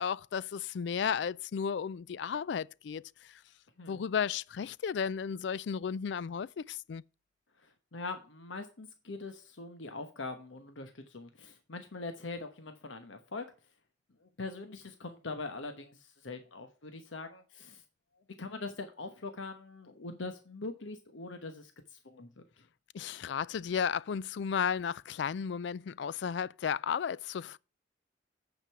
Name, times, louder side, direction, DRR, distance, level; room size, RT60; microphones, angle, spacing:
voice 1, 0.0-3.4 3.9-7.0 22.9-27.6, left 7 dB, 65° left, 0.3 m, -34 dB
voice 2, 7.6-13.4 14.2-17.8 18.4-22.4, left 3 dB, 85° left, 1.1 m, -42 dB
9.2 x 5.3 x 5.7 m
head